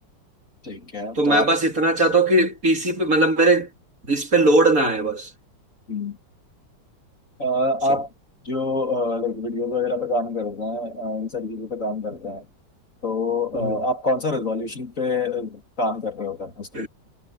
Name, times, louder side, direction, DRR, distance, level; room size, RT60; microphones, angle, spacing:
voice 1, 0.6-1.5 5.9-6.2 7.4-8.1 8.4-12.5 13.0-16.9, left 2 dB, 40° left, 3.5 m, -26 dB
voice 2, 1.1-3.7 4.1-5.3 7.9-8.0 13.5-13.8 16.7-16.9, right 2 dB, 45° right, 3.2 m, -19 dB
omnidirectional pair, 2.1 m